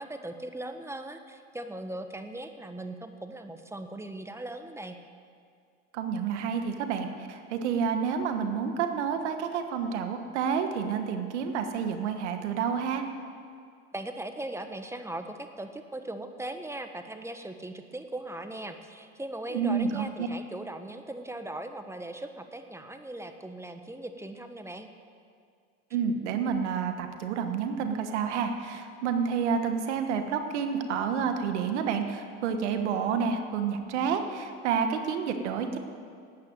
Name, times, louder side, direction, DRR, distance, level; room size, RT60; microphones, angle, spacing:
voice 1, 0.0-5.0 13.9-24.9, right 1 dB, 10° right, 7 dB, 1.2 m, -39 dB
voice 2, 5.9-13.0 19.5-20.3 25.9-35.8, right 6 dB, 90° right, 7 dB, 1.3 m, -29 dB
12.0 x 8.8 x 9.1 m, 2.2 s
supercardioid pair, 85°, 34 cm